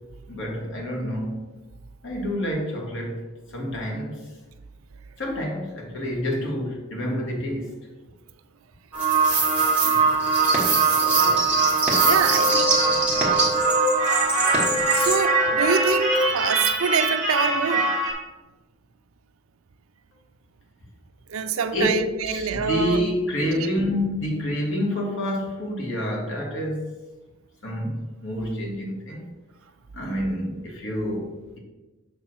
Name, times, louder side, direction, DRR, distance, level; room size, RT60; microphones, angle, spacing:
voice 1, 0.3-1.4 2.0-4.3 5.2-7.8 10.4-10.9 12.1-16.3 21.7-26.8 27.6-29.4 29.9-31.6, left 1 dB, 65° left, 1.8 m, -28 dB
sound 1, 8.9-18.1, right 4 dB, 5° right, 1.4 m, -21 dB
voice 2, 10.4-11.6 12.0-12.8 14.9-17.9 21.3-23.0 23.5-23.7, right 6 dB, 85° right, 0.5 m, -26 dB
6.9 x 3.5 x 6.2 m
head